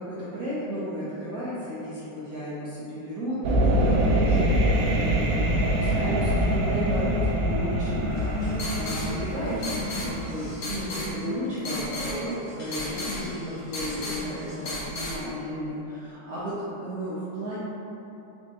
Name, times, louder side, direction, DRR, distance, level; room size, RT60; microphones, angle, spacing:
voice 1, 0.0-4.6 4.8-17.6, equal, 65° right, -10 dB, 0.9 m, -34 dB
sound 1, 3.4-10.6, right 1 dB, 85° right, 1.4 m, -24 dB
sound 2, 8.1-15.2, left 1 dB, 85° left, 1.7 m, -33 dB
4.1 x 3.5 x 2.8 m, 2.9 s
omnidirectional pair, 2.2 m